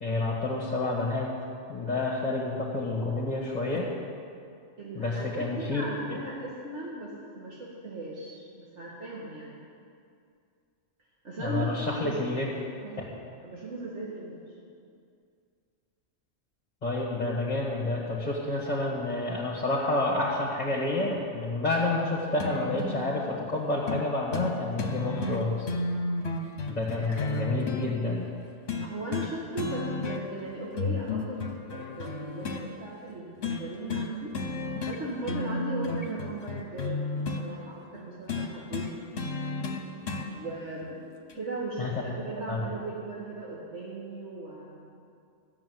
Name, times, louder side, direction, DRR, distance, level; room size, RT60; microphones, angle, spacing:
voice 1, 0.0-1.3 1.7-3.9 4.9-5.8 11.4-12.5 13.0-13.1 16.8-25.7 26.7-28.3 41.8-42.0 42.5-42.6, left 2 dB, 35° left, -4 dB, 1.9 m, -29 dB
voice 2, 4.8-9.6 11.2-12.3 12.8-14.4 26.9-27.2 28.8-34.3 34.8-39.1 40.3-41.1 41.3-45.0, right 2 dB, 65° right, -7 dB, 2.2 m, -38 dB
sound 1, 22.4-23.0 23.9-24.1 24.3-24.5 24.8-27.9 28.7-29.3 29.6-30.4 30.8-32.6 33.4-33.6 33.9-34.1 34.3-35.0 35.2-37.5 38.3-40.3 41.3-41.4, left 3 dB, 60° left, 1.4 m, -32 dB
13.5 x 7.2 x 9.4 m, 2.3 s
omnidirectional pair, 1.3 m